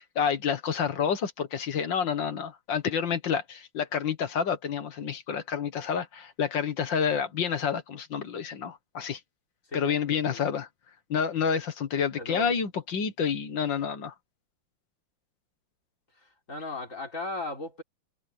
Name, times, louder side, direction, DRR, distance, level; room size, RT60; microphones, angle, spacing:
voice 1, 0.0-9.2 9.7-10.7 11.1-14.1, left 7 dB, 60° left, 2.1 m, -29 dB
voice 2, 9.7-10.4 12.2-12.5 16.5-17.8, left 2 dB, 35° left, 4.8 m, -36 dB
omnidirectional pair, 2.3 m